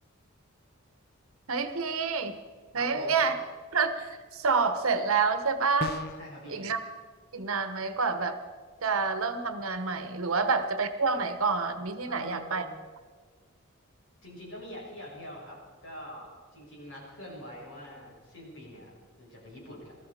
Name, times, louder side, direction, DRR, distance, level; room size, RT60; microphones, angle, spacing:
voice 1, 1.5-2.4 2.7-3.3 3.7-6.0 6.5-6.8 7.3-8.4 8.8-12.6, right 4 dB, 75° right, 10 dB, 1.1 m, -28 dB
voice 2, 2.7-3.2 6.2-6.7 10.3-10.4 12.0-12.7 14.2-19.9, equal, 60° left, -3 dB, 6.2 m, -45 dB
sound 1, 5.8-6.3, left 2 dB, 45° left, 0.6 m, -35 dB
19.0 x 13.5 x 5.0 m, 1.5 s
head